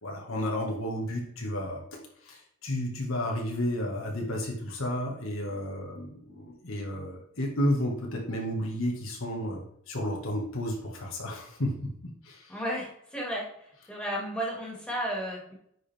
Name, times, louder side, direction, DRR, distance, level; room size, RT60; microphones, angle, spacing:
voice 1, 0.0-1.8 2.3-11.7 12.3-12.4, left 1 dB, 65° left, 0 dB, 1.7 m, -32 dB
voice 2, 12.5-13.5 13.9-15.5, equal, 5° left, -4 dB, 2.4 m, -33 dB
9.9 x 4.9 x 3.5 m, 0.72 s
head